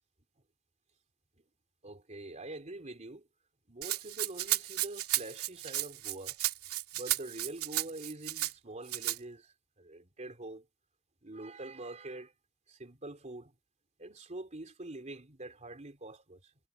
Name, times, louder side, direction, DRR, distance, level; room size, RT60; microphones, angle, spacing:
voice 1, 1.8-3.3 3.7-6.4 6.9-10.7 11.2-12.3 12.7-13.6 14.0-16.5, right 2 dB, 30° right, 3.6 m, -45 dB
Rattle (instrument), 3.8-8.5 8.9-9.2, right 15 dB, 75° right, 2.5 m, -34 dB
head